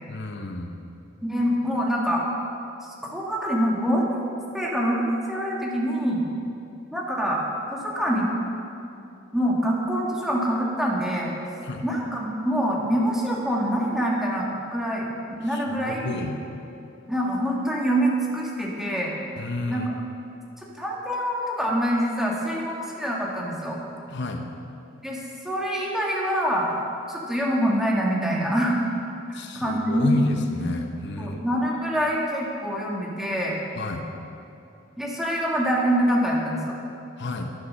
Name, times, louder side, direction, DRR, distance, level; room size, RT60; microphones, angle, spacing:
voice 1, 0.1-0.8 11.6-11.8 15.4-16.4 19.4-19.9 24.1-24.5 29.3-31.4 33.8-34.1 37.2-37.5, left 2 dB, 60° left, 4 dB, 0.8 m, -30 dB
voice 2, 1.2-2.3 2.8-4.1 4.5-6.3 6.9-7.4 7.7-8.3 9.3-11.3 11.8-15.1 15.4-16.2 17.1-19.2 19.7-19.9 20.6-23.8 25.0-26.7 27.1-28.8 29.3-30.3 31.2-33.6 35.0-36.7, equal, ahead, -3 dB, 1.6 m, -25 dB
10.5 x 10.0 x 6.3 m, 2.7 s
head